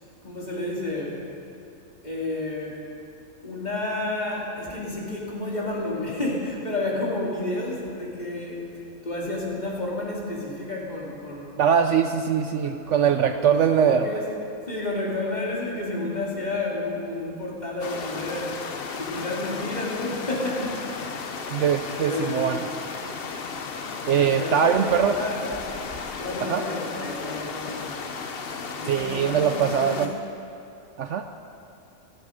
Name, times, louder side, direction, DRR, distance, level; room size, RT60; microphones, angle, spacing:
voice 1, 0.2-1.2 2.0-2.8 3.4-8.6 9.0-11.6 12.6-14.2 14.7-18.7 19.0-20.8 21.3-21.6 22.0-22.5 24.1-25.4 26.2-30.1, left 2 dB, 30° left, -4 dB, 2.8 m, -31 dB
voice 2, 11.6-14.0 21.5-22.6 24.1-25.2 26.4-26.6 28.9-30.1 31.0-31.2, right 8 dB, 65° right, 8 dB, 0.8 m, -22 dB
sound 1, 17.8-30.1, left 5 dB, 50° left, 1.0 m, -34 dB
17.0 x 13.0 x 5.2 m, 2.7 s
omnidirectional pair, 1.4 m